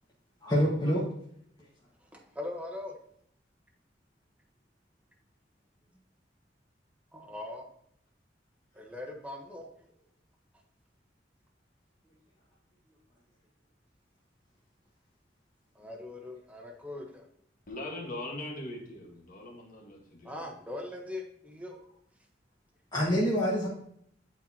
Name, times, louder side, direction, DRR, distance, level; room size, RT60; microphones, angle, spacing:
voice 1, 0.4-1.1 22.9-23.7, equal, 25° left, -7 dB, 1.5 m, -26 dB
voice 2, 2.0-2.9 7.1-7.7 8.7-9.7 15.7-17.3 20.2-21.7, left 2 dB, 10° right, 2 dB, 1.0 m, -41 dB
voice 3, 17.7-20.4, left 1 dB, 50° left, 1 dB, 1.5 m, -41 dB
10.0 x 4.4 x 2.8 m, 0.69 s
head